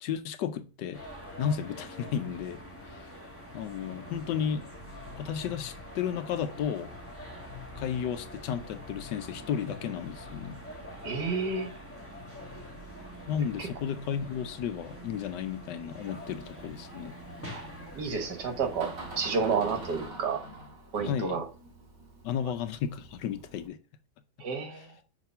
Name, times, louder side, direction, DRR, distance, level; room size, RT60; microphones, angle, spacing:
voice 1, 0.0-1.0 1.4-2.6 3.5-4.6 5.2-6.9 7.8-10.6 13.3-17.2 21.0-21.4 22.2-23.8, left 8 dB, 80° left, 1.3 m, -33 dB
sound 1, 0.9-20.1, equal, 10° left, 1.7 m, -45 dB
voice 2, 11.0-11.7 13.6-13.7 17.5-17.7 18.0-20.4 20.9-21.5 24.4-24.9, right 5 dB, 75° right, 1.8 m, -30 dB
Door, 16.0-23.7, right 2 dB, 55° right, 1.8 m, -47 dB
6.0 x 3.3 x 5.6 m
omnidirectional pair, 1.8 m